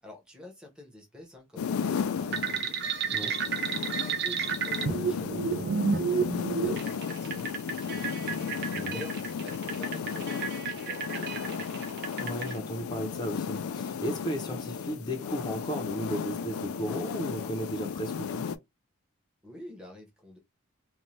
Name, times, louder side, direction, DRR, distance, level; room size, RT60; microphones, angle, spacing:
voice 1, 0.0-8.5 8.9-9.1 9.4-12.0 19.4-20.4, left 1 dB, 5° right, 0.8 m, -49 dB
sound 1, 1.6-18.6, left 6 dB, 80° left, 0.4 m, -34 dB
sound 2, 2.3-12.5, right 5 dB, 50° right, 0.5 m, -32 dB
voice 2, 12.2-18.5, right 1 dB, 20° left, 0.5 m, -35 dB
2.6 x 2.1 x 3.0 m
head